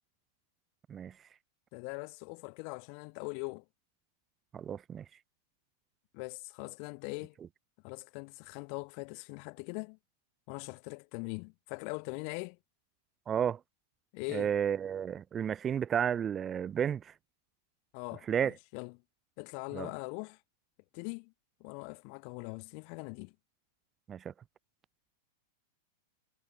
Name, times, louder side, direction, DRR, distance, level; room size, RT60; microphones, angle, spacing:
voice 1, 1.7-3.6 6.1-7.4 7.8-10.0 10.5-12.6 14.1-14.5 17.9-19.0 19.4-20.4 20.9-21.3 21.6-23.3, left 40 dB or more, 45° left, 1.0 m, -41 dB
voice 2, 4.5-5.0 13.3-13.6 14.3-17.1 18.3-18.5 19.7-19.9 24.1-24.3, right 8 dB, 25° right, 0.4 m, -32 dB
figure-of-eight pair, 95°, 0 cm